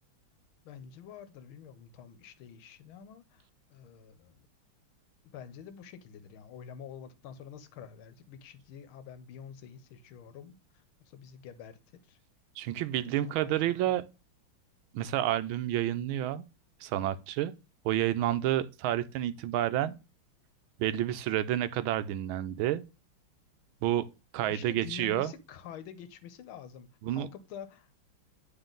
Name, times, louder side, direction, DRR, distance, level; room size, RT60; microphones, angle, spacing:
voice 1, 0.6-4.4 5.3-12.2 13.0-13.8 24.5-27.9, left 8 dB, 85° left, 1.6 m, -48 dB
voice 2, 12.6-14.0 14.9-16.4 16.8-17.5 17.8-20.0 20.8-22.8 23.8-24.1 24.3-25.3 27.0-27.3, right 12 dB, 80° right, 1.4 m, -29 dB
9.1 x 3.8 x 3.8 m
omnidirectional pair, 2.2 m